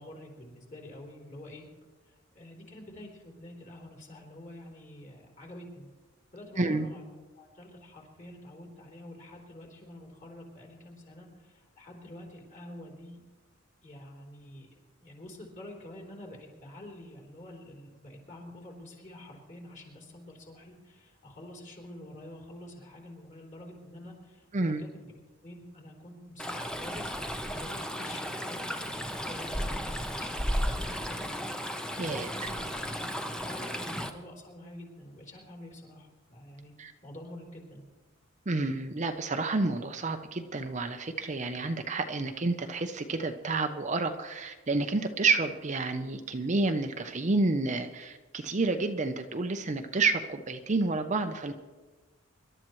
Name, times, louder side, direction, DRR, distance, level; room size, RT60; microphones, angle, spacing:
voice 1, 0.0-1.6 2.0-5.9 6.3-7.0 7.3-13.2 13.8-25.1 25.4-27.1 27.5-31.3 32.0-33.1 33.4-36.7 37.0-37.8, left 1 dB, 40° left, -1 dB, 3.4 m, -47 dB
voice 2, 6.6-6.9 24.5-24.8 32.0-32.3 36.8-36.9 38.5-51.5, right 3 dB, 35° right, 6 dB, 0.7 m, -29 dB
Stream, 26.4-34.1, equal, 5° left, 0.8 m, -34 dB
25.5 x 12.0 x 3.1 m, 1.3 s
head